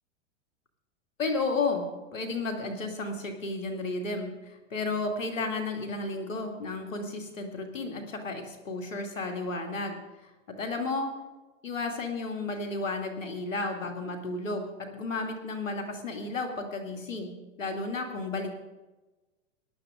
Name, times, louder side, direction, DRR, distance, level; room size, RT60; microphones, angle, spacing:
voice 1, 1.2-11.1 11.6-18.5, left 3 dB, 85° left, 3 dB, 2.7 m, -33 dB
18.0 x 11.5 x 3.8 m, 1.1 s
hypercardioid pair, 105°, 38 cm